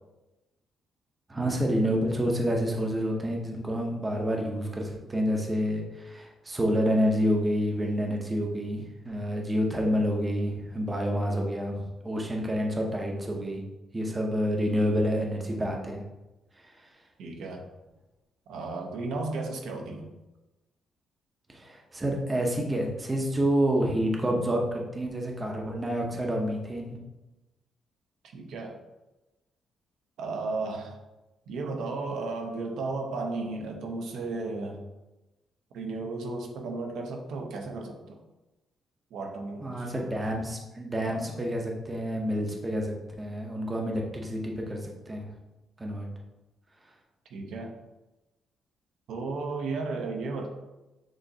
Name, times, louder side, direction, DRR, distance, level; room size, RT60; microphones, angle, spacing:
voice 1, 1.3-13.6 13.9-16.0 21.5-27.0 39.6-45.3 45.8-46.1, equal, 15° right, 0 dB, 0.6 m, -28 dB
voice 2, 17.2-17.6 18.5-20.1 28.3-28.8 30.2-31.0 31.5-34.8 35.7-38.2 39.1-40.1 41.0-41.2 47.3-47.7 49.1-50.5, right 3 dB, 80° right, 2 dB, 0.6 m, -34 dB
6.3 x 2.8 x 2.7 m, 1.0 s
cardioid pair, 155°, 0 cm